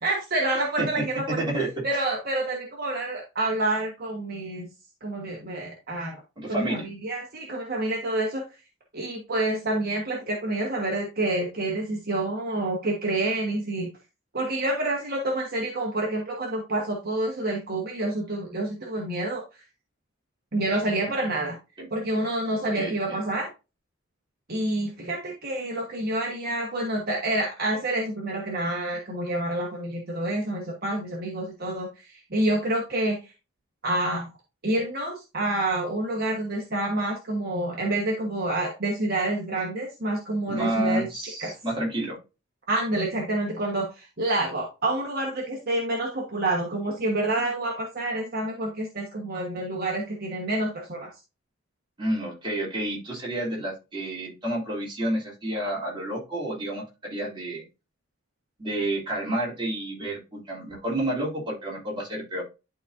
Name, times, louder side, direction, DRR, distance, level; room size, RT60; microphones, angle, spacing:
voice 1, 0.0-1.2 1.8-4.7 5.0-6.2 6.5-8.4 8.9-13.9 14.3-19.4 20.5-21.6 21.9-23.5 24.5-33.3 33.8-34.3 34.6-41.1 41.4-41.5 42.7-51.1, right 1 dB, 50° right, -1 dB, 1.3 m, -28 dB
voice 2, 0.5-1.0 1.4-2.0 6.4-6.9 22.8-23.2 40.5-42.2 52.0-57.6 58.6-62.4, right 1 dB, 25° right, -4 dB, 2.9 m, -30 dB
11.5 x 4.0 x 2.6 m, 0.28 s
head